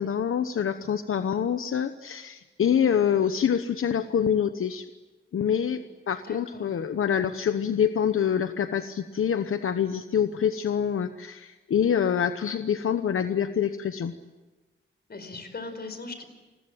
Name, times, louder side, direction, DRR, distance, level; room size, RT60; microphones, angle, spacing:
voice 1, 0.0-4.9 5.3-5.8 6.1-14.1, left 8 dB, 85° left, 10 dB, 1.0 m, -26 dB
voice 2, 6.2-6.8 15.1-16.2, left 3 dB, 50° left, 9 dB, 4.9 m, -39 dB
29.5 x 21.0 x 9.0 m, 1.2 s
wide cardioid pair, 115°, 21 cm